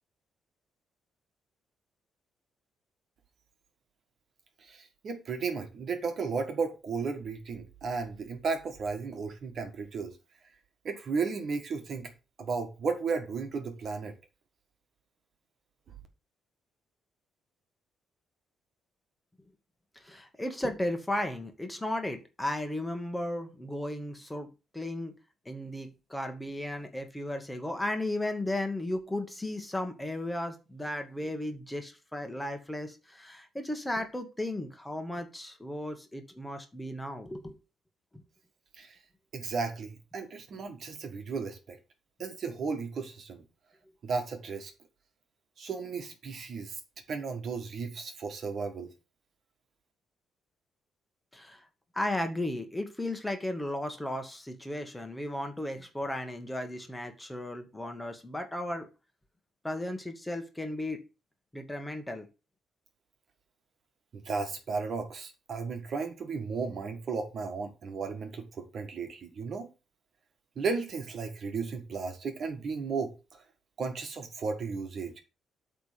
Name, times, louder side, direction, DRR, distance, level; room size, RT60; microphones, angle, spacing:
voice 1, 4.6-10.1 10.8-12.1 12.4-14.1 38.7-39.0 39.3-41.8 42.2-43.4 44.0-44.7 45.6-46.8 47.1-48.9 64.1-69.7 70.5-73.4 73.8-75.2, right 4 dB, 55° right, 1.7 m, -34 dB
voice 2, 20.0-25.1 25.4-37.6 38.1-38.2 51.3-51.6 51.9-58.9 59.6-61.0 61.5-62.3, left 1 dB, 10° left, 1.5 m, -35 dB
8.0 x 3.5 x 6.6 m
cardioid pair, 90°, 0 cm